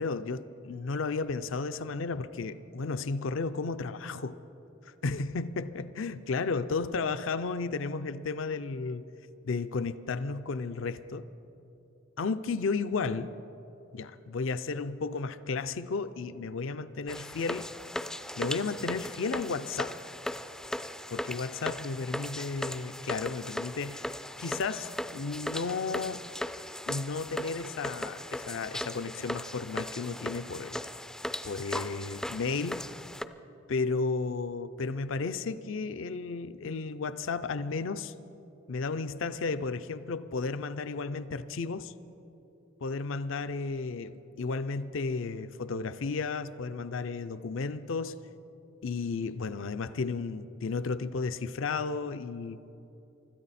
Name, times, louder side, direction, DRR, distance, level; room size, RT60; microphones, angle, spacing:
voice 1, 0.0-4.4 4.9-9.1 9.4-11.3 12.2-13.3 13.9-17.7 18.4-20.0 21.1-24.1 24.4-26.2 26.9-30.8 31.4-32.9 33.7-38.1 38.7-41.9 42.8-48.2 48.8-52.6, left 4 dB, 70° left, 12 dB, 0.5 m, -33 dB
sound 1, 17.1-33.2, left 1 dB, 5° left, 0.3 m, -38 dB
24.5 x 13.5 x 4.2 m, 2.9 s
head